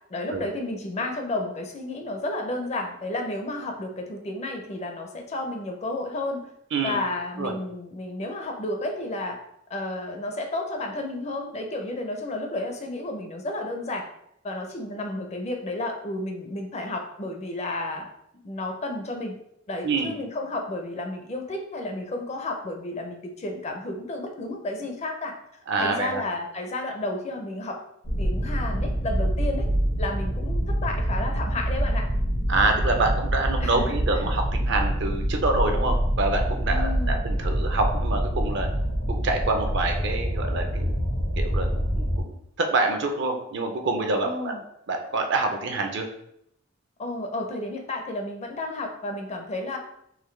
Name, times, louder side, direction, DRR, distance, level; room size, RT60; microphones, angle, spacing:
voice 1, 0.1-6.5 6.8-9.4 9.7-14.1 14.4-18.1 18.3-19.4 19.7-25.3 25.8-27.8 28.2-29.7 30.0-32.1 33.6-34.0 36.7-37.2 44.2-44.6 47.0-49.8, left 2 dB, 35° left, 3 dB, 0.5 m, -32 dB
voice 2, 19.8-20.2 25.7-26.2 32.5-38.7 39.1-40.9 41.4-41.7 42.0-42.1 42.6-44.5 44.9-46.1, right 3 dB, 60° right, 4 dB, 0.6 m, -26 dB
sound 1, 28.0-42.2, equal, 75° left, 1.1 m, -26 dB
3.9 x 2.9 x 3.2 m, 0.75 s
head